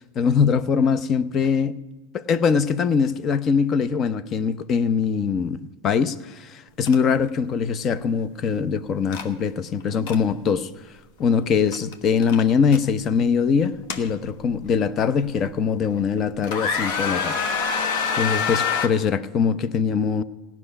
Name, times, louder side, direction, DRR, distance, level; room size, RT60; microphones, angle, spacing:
voice 1, 0.2-1.8 2.1-5.6 5.8-10.7 11.2-17.4 17.7-17.9 18.1-20.2, left 6 dB, 35° left, 0.6 m, -22 dB
sound 1, 6.9-7.0 7.3-7.5 9.1-9.3 9.8-10.2 11.7-11.9 12.2-12.8 13.6-14.6 15.2-15.3 15.9-16.2 16.4-18.9, left 6 dB, 60° left, 1.2 m, -26 dB
16.5 x 6.0 x 9.8 m
hypercardioid pair, 105°, 0 cm